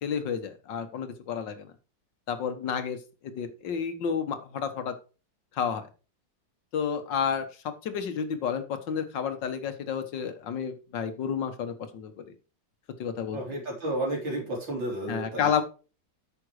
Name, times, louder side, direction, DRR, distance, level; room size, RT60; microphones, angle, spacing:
voice 1, 0.0-1.7 2.3-3.0 3.2-4.9 5.5-5.9 6.7-12.2 13.0-13.4 15.1-15.6, left 7 dB, 75° left, 9 dB, 1.9 m, -31 dB
voice 2, 13.3-15.6, right 1 dB, 85° right, -1 dB, 4.0 m, -32 dB
8.9 x 6.0 x 4.8 m, 0.33 s
omnidirectional pair, 2.0 m